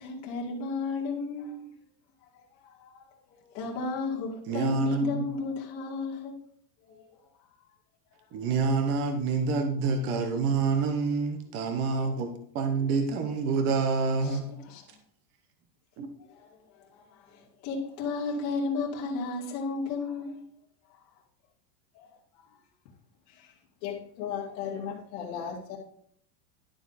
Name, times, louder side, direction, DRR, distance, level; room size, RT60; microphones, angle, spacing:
voice 1, 0.0-1.7 2.3-3.1 3.5-6.4 6.8-7.0 14.2-14.4 14.7-14.8 16.3-20.4 21.9-22.1 23.4-23.5, left 4 dB, 35° left, -1 dB, 2.4 m, -34 dB
voice 2, 4.5-5.3 8.3-14.5 16.0-16.1, right 4 dB, 25° right, 6 dB, 0.9 m, -27 dB
voice 3, 23.8-25.8, left 8 dB, 50° left, -6 dB, 2.2 m, -35 dB
11.5 x 7.0 x 4.1 m, 0.64 s
supercardioid pair, 175°, 49 cm